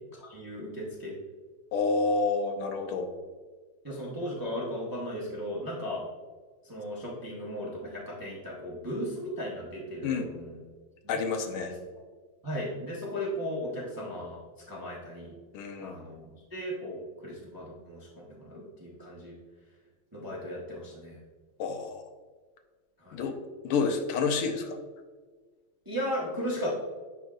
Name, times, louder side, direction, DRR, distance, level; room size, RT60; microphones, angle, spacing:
voice 1, 0.2-1.2 3.8-6.0 6.6-10.6 11.0-11.2 11.7-11.8 12.4-14.4 14.7-15.3 15.8-19.4 20.1-21.2 23.0-23.3 25.8-26.7, equal, 15° right, -5 dB, 0.7 m, -36 dB
voice 2, 1.7-3.1 10.0-10.2 11.1-11.7 15.5-15.9 21.6-22.0 23.1-23.3 23.6-24.7, left 4 dB, 85° left, 5 dB, 1.6 m, -29 dB
10.5 x 3.6 x 2.5 m, 1.4 s
omnidirectional pair, 2.4 m